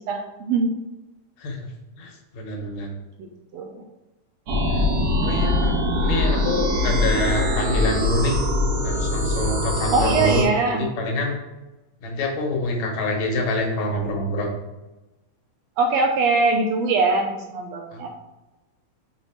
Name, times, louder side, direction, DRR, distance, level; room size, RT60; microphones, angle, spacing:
voice 1, 0.1-0.7 3.2-3.3 3.5-3.8 4.9-5.1 9.9-10.9 15.8-18.1, right 3 dB, 80° right, 3 dB, 1.6 m, -22 dB
voice 2, 2.0-2.9 4.7-4.9 5.2-5.7 6.0-8.4 8.8-11.4 12.0-14.5 17.9-18.0, left 1 dB, 70° left, 1 dB, 2.2 m, -26 dB
sound 1, 4.5-10.4, left 1 dB, 55° right, 1.9 m, -22 dB
6.0 x 4.1 x 4.3 m, 1.1 s
omnidirectional pair, 3.6 m